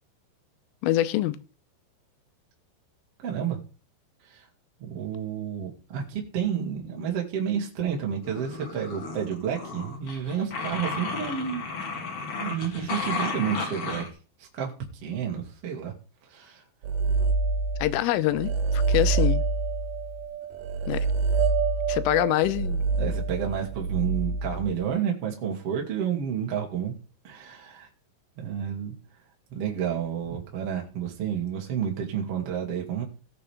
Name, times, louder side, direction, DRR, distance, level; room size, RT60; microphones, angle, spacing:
voice 1, 0.8-1.4 17.8-19.4 20.9-21.1 21.9-22.8, left 14 dB, 85° left, 3.3 m, -25 dB
voice 2, 3.2-3.6 4.3-4.4 4.9-11.6 12.4-14.0 14.5-14.7 15.0-15.9 16.3-16.6 23.0-26.9 27.2-27.9 28.4-28.9 29.5-33.0, right 8 dB, 40° right, 2.6 m, -30 dB
sound 1, 8.2-14.1, left 4 dB, 65° left, 1.4 m, -33 dB
sound 2, 16.8-18.0 18.3-24.9, right 4 dB, 90° right, 1.9 m, -26 dB
19.0 x 6.9 x 3.5 m
omnidirectional pair, 5.8 m